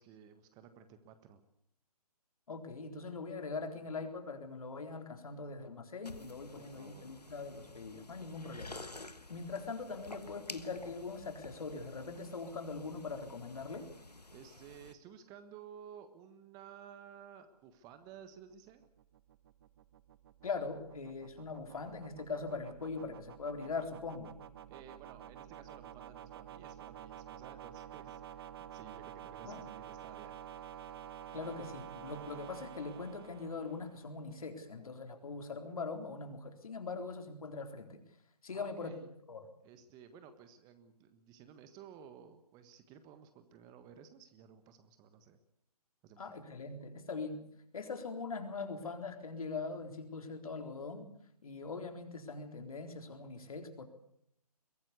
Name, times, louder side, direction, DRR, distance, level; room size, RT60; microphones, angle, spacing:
voice 1, 0.0-1.4 6.5-7.0 14.3-18.8 24.7-30.3 38.5-39.1 39.6-45.4 46.0-46.3, right 8 dB, 20° right, 10 dB, 1.5 m, -55 dB
voice 2, 2.5-8.9 9.3-13.9 20.4-24.4 29.4-29.6 31.3-38.0 38.4-39.0 39.3-39.4 46.2-47.5 47.7-51.1 51.4-53.8, left 4 dB, 60° left, 5 dB, 4.0 m, -42 dB
sound 1, 6.0-14.9, left 2 dB, 90° left, 1.5 m, -51 dB
sound 2, 18.0-34.2, right 10 dB, 40° right, 1.0 m, -50 dB
22.5 x 17.0 x 8.3 m, 0.73 s
figure-of-eight pair, 135°, 20 cm